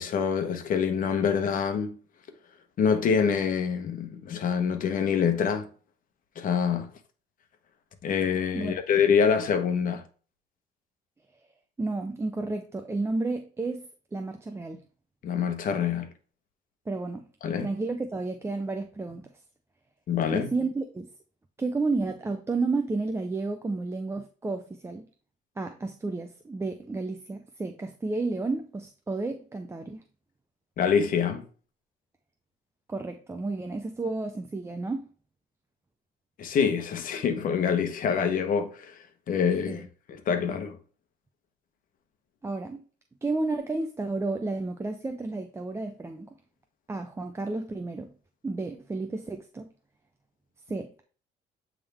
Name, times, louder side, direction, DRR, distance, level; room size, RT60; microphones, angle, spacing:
voice 1, 0.0-1.9 2.8-5.7 6.4-6.9 8.0-10.0 15.2-16.1 17.4-17.7 20.1-20.5 30.8-31.4 36.4-39.0 39.3-40.8, left 6 dB, 55° left, 1.2 m, -26 dB
voice 2, 11.8-14.8 16.9-17.3 17.6-19.2 20.3-21.1 21.6-25.1 25.6-30.0 32.9-35.1 39.7-39.8 42.4-42.8 43.2-46.3 46.9-48.1 48.4-49.7 50.7-51.0, right 3 dB, 15° right, 0.6 m, -31 dB
8.3 x 3.7 x 3.5 m
cardioid pair, 110°, 17 cm